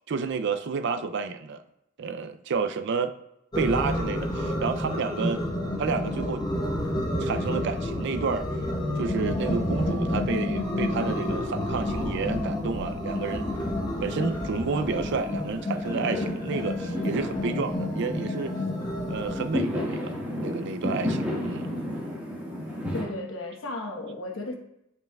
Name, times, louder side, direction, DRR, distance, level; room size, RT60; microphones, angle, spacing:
voice 1, 0.1-1.6 2.0-3.1 3.6-5.4 5.8-6.4 7.2-8.5 9.0-13.5 14.0-18.5 19.1-21.7, right 4 dB, 60° right, 9 dB, 0.4 m, -30 dB
sound 1, 3.5-19.5, left 1 dB, 20° left, 1.0 m, -30 dB
Fireworks, 6.6-7.5 7.8-23.0, left 1 dB, 10° right, 1.6 m, -35 dB
voice 2, 22.9-24.5, left 2 dB, 70° left, 3 dB, 1.1 m, -34 dB
8.9 x 5.4 x 2.3 m, 0.85 s
head